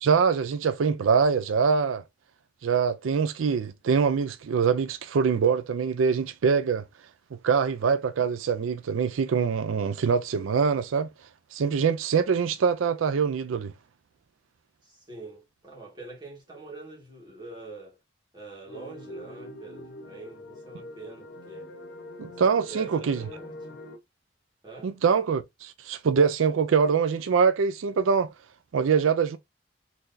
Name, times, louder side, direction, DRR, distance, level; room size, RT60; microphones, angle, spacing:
voice 1, 0.0-2.0 2.6-6.8 7.4-11.1 11.5-13.7 22.2-23.2 24.8-28.3 28.7-29.4, right 6 dB, 90° right, 0.4 m, -24 dB
voice 2, 14.8-18.0 18.3-21.7 22.3-23.8 24.6-25.0, right 3 dB, 20° right, 1.7 m, -44 dB
sound 1, 18.6-24.0, left 1 dB, 60° left, 0.8 m, -43 dB
4.0 x 3.2 x 2.6 m
head